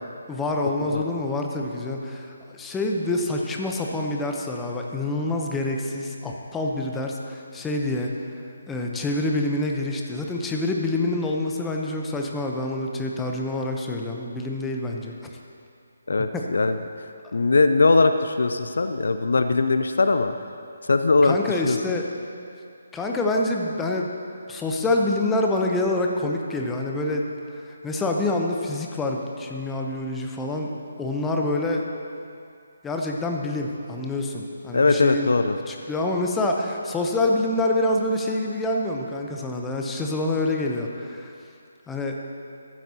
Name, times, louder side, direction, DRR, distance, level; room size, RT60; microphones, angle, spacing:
voice 1, 0.3-8.1 8.7-15.1 16.2-16.4 21.2-22.1 22.9-24.1 24.5-27.2 27.5-30.7 31.0-31.8 32.8-35.3 35.7-41.3 41.9-42.2, left 2 dB, 10° left, 0 dB, 0.8 m, -26 dB
voice 2, 16.1-20.3 20.9-21.4 21.6-21.8 34.7-35.6, left 3 dB, 60° left, 8 dB, 0.4 m, -20 dB
14.5 x 11.5 x 2.9 m, 2.4 s
figure-of-eight pair, 145°, 0 cm